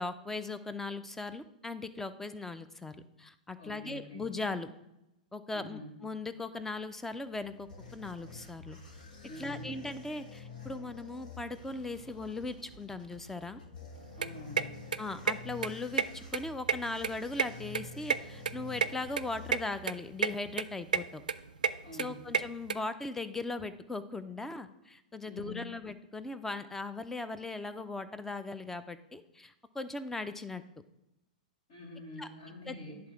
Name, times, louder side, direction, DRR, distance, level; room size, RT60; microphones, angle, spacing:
voice 1, 0.0-4.7 5.3-8.8 9.4-13.6 15.0-21.2 22.0-30.6 32.2-32.3 32.7-32.8, left 3 dB, 10° left, 12 dB, 0.5 m, -39 dB
voice 2, 3.6-4.3 5.5-6.0 9.3-9.8 14.1-14.8 21.8-22.2 25.2-25.7 31.7-33.0, left 1 dB, 55° left, -3 dB, 3.0 m, -46 dB
sound 1, 7.1-20.1, left 4 dB, 80° left, 1.6 m, -49 dB
sound 2, 14.0-22.7, right 6 dB, 85° right, 0.4 m, -32 dB
10.5 x 3.7 x 4.6 m, 0.88 s
hypercardioid pair, 110°, 4 cm